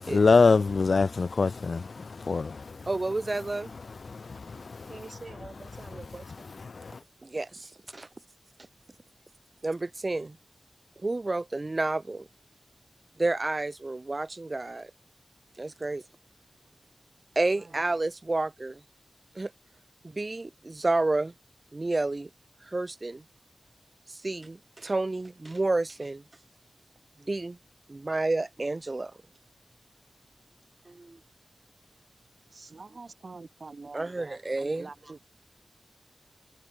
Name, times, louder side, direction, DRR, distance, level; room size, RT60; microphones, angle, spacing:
voice 1, 0.1-2.8 4.0-4.9 6.7-6.9, left 4 dB, 65° left, 0.3 m, -24 dB
voice 2, 2.9-3.7 7.2-8.1 9.6-10.4 11.0-12.3 13.2-14.9 15.6-16.0 17.4-18.8 19.4-19.5 20.0-21.3 21.7-22.3 22.7-23.2 24.1-26.2 27.3-27.6 27.9-29.1 30.9-31.2 33.9-34.9, right 2 dB, 35° right, 0.5 m, -30 dB
voice 3, 4.9-6.5 17.5-17.8 32.5-35.3, right 3 dB, 55° right, 3.8 m, -46 dB
wide cardioid pair, 100°, 0 cm